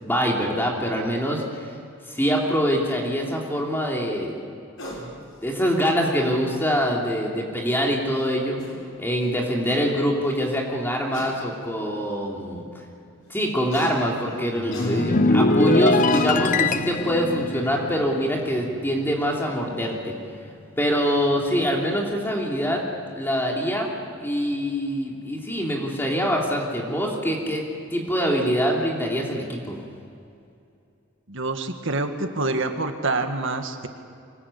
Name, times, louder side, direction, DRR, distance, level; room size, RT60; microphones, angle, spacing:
voice 1, 0.0-1.7 2.1-4.4 5.0-5.1 5.4-8.6 9.0-12.6 13.3-20.1 20.8-22.9 23.1-23.9 24.2-27.6 27.9-29.8, equal, 10° left, -1 dB, 3.0 m, -24 dB
sound 1, 4.8-5.1 6.5-6.6 8.2-8.3 8.6-8.8 9.3-9.4 9.6-9.9 11.1-11.3 12.1-12.2 13.7-13.9 14.7-14.9 15.7-15.8 16.1-16.3, equal, 80° left, 6.7 m, -36 dB
sound 2, 14.5-19.2 19.5-19.8, left 2 dB, 40° left, 0.7 m, -23 dB
voice 2, 31.3-33.9, right 2 dB, 65° right, 6 dB, 1.8 m, -26 dB
25.0 x 20.0 x 8.5 m, 2.5 s
head